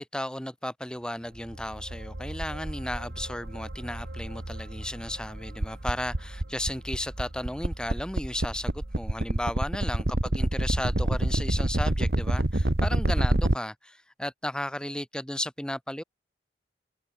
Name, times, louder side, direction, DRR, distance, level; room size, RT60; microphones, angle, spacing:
voice 1, 0.0-16.0, left 1 dB, 5° left, 2.3 m, -34 dB
sound 1, 1.2-11.8 12.1-12.2, right 1 dB, 75° right, 2.9 m, -46 dB
sound 2, 1.5-13.6, right 1 dB, 60° right, 1.5 m, -28 dB
head